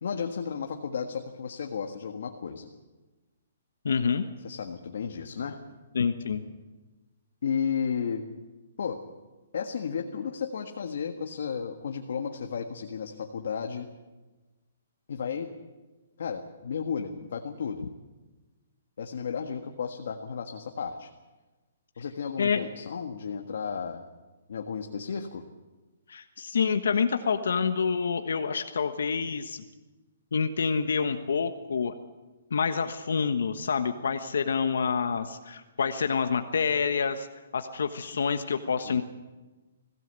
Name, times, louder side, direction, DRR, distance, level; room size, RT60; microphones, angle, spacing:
voice 1, 0.0-2.7 4.4-5.6 7.4-8.2 8.8-9.0 9.5-13.9 15.1-15.5 16.2-17.9 19.0-21.1 22.0-24.1 24.5-25.4 38.8-39.0, left 6 dB, 65° left, 4 dB, 1.6 m, -33 dB
voice 2, 3.8-4.2 5.9-6.4 22.4-22.7 26.1-29.6 30.3-31.9 32.5-37.3 37.5-39.0, left 5 dB, 85° left, 7 dB, 1.3 m, -27 dB
21.5 x 17.0 x 8.3 m, 1.2 s
hypercardioid pair, 170°, 0 cm